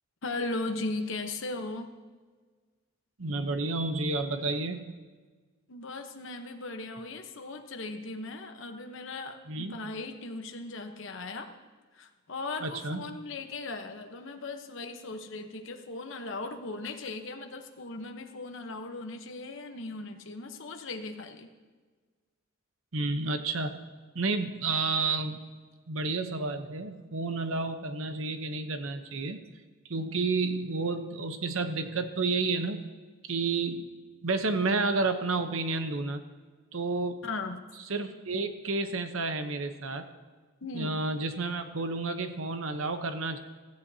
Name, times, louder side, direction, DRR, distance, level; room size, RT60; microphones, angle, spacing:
voice 1, 0.2-1.9 5.7-11.5 11.9-21.5 37.2-37.6 40.6-41.0, left 3 dB, 60° left, 5 dB, 1.0 m, -38 dB
voice 2, 3.2-5.0 9.5-9.8 12.6-13.2 22.9-23.9 24.1-25.4 25.9-29.5 29.8-32.9 33.2-33.9 34.2-36.2 36.7-37.2 37.9-40.1 40.7-43.4, right 3 dB, 70° right, 8 dB, 0.9 m, -31 dB
16.0 x 14.5 x 2.8 m, 1.4 s
head